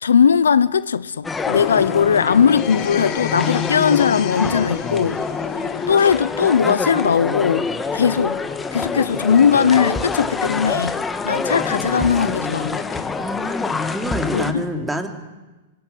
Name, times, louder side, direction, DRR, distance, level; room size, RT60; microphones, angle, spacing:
voice 1, 0.0-5.2 5.9-7.7 7.9-8.4 8.7-11.0 11.2-12.8 14.3-14.6, left 7 dB, 85° left, 0.8 m, -18 dB
sound 1, 1.2-14.5, left 4 dB, 15° left, 2.2 m, -26 dB
sound 2, 1.4-5.9, left 10 dB, 45° left, 3.3 m, -28 dB
voice 2, 13.2-15.1, equal, 5° right, 3.2 m, -27 dB
25.0 x 22.5 x 9.8 m
hypercardioid pair, 115°, 0 cm